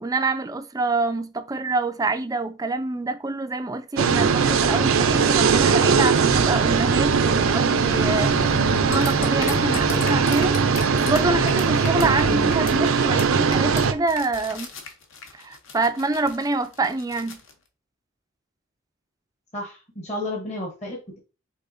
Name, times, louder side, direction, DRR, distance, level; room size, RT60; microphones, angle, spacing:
voice 1, 0.0-10.6 10.9-14.7 15.3-17.4, right 3 dB, 15° right, 0.3 m, -26 dB
sound 1, 4.0-13.9, right 5 dB, 70° right, 0.5 m, -20 dB
sound 2, 7.9-12.8, left 4 dB, 50° left, 0.4 m, -34 dB
sound 3, 8.9-12.2 12.5-12.9 13.2-13.3 13.5-17.5, left 5 dB, 65° left, 0.9 m, -37 dB
voice 2, 19.5-21.2, left 1 dB, 30° left, 1.1 m, -32 dB
5.5 x 3.7 x 2.6 m
head